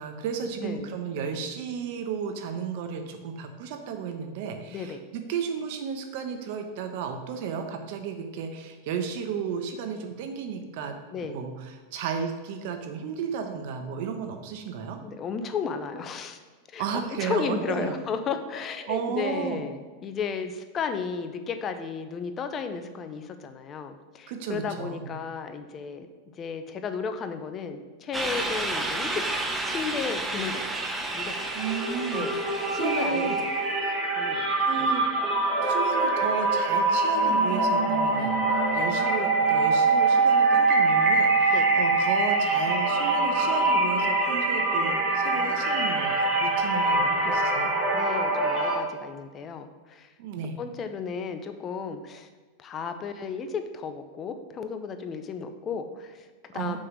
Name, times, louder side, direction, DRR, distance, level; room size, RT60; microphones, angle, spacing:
voice 1, 0.0-10.9 11.2-15.0 16.8-18.0 18.9-19.6 24.3-25.2 31.5-32.3 32.7-33.4 34.6-35.1 35.6-38.4 38.7-47.7 50.2-50.6 56.5-56.8, right 6 dB, 60° right, 6 dB, 1.0 m, -33 dB
voice 2, 0.5-0.9 4.7-5.0 11.1-11.4 15.0-16.4 16.7-26.1 26.4-29.2 29.7-30.8 31.1-31.3 32.1-32.3 32.7-33.3 34.1-34.9 41.5-41.7 47.9-50.1 50.6-52.3 52.6-56.8, left 6 dB, 25° left, 8 dB, 0.6 m, -34 dB
sound 1, 28.1-33.6, right 2 dB, 10° right, 0.8 m, -32 dB
sound 2, 30.3-30.4 30.7-48.8, right 3 dB, 35° right, 1.7 m, -24 dB
6.3 x 3.9 x 6.1 m, 1.4 s
supercardioid pair, 140°, 0 cm